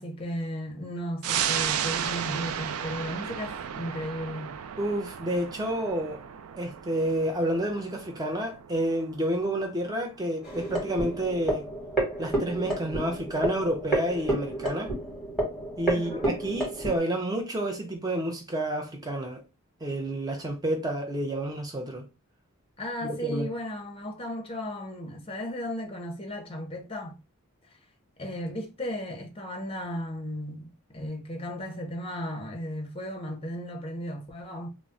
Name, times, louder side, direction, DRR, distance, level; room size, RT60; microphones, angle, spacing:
voice 1, 0.0-4.6 15.9-16.3 22.8-27.2 28.2-34.7, equal, 25° left, 0.6 m, -35 dB
sound 1, 1.2-12.2 12.6-12.7, right 9 dB, 75° right, 0.3 m, -35 dB
voice 2, 4.8-6.2 6.6-11.6 12.2-14.9 15.8-19.4 19.8-22.0 23.0-23.5, right 1 dB, 20° right, 0.5 m, -29 dB
sound 2, 10.4-17.0, right 2 dB, ahead, 1.1 m, -30 dB
2.3 x 2.0 x 3.8 m
head